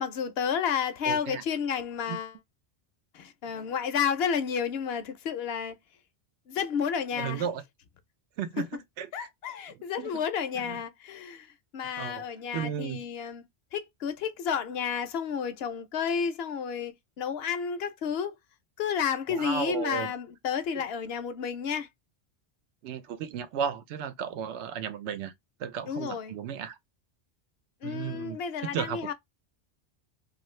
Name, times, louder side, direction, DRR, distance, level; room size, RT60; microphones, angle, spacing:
voice 1, 0.0-2.3 3.1-5.8 6.5-7.5 8.6-8.7 9.1-11.5 11.7-13.4 13.7-18.4 18.8-21.9 25.9-26.3 27.8-29.1, left 7 dB, 70° left, 0.8 m, -31 dB
voice 2, 1.1-1.4 2.1-2.2 7.1-7.6 8.4-9.3 9.7-10.2 10.5-10.8 12.0-12.2 12.5-13.0 19.3-20.1 20.7-20.8 22.8-25.3 25.6-26.8 27.8-28.4 28.7-29.1, right 8 dB, 90° right, 0.9 m, -34 dB
2.6 x 2.4 x 3.1 m
omnidirectional pair, 1.1 m